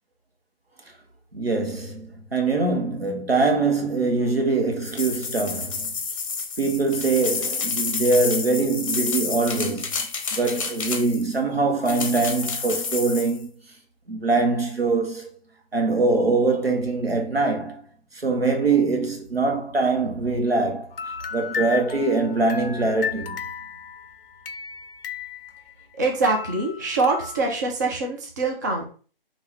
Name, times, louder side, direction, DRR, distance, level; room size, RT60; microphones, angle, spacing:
voice 1, 1.3-5.9 6.6-9.9 10.3-13.5 14.1-15.3 15.7-17.8 18.1-20.9 21.3-23.4, right 3 dB, 90° right, 1.3 m, -23 dB
sound 1, 4.8-11.3 11.9-13.4, left 5 dB, 35° left, 0.7 m, -29 dB
sound 2, 20.9-25.9 26.2-27.5, left 7 dB, 75° left, 0.5 m, -34 dB
voice 2, 26.0-28.8, right 3 dB, 20° right, 0.5 m, -24 dB
3.7 x 2.8 x 4.2 m
figure-of-eight pair, 145°, 29 cm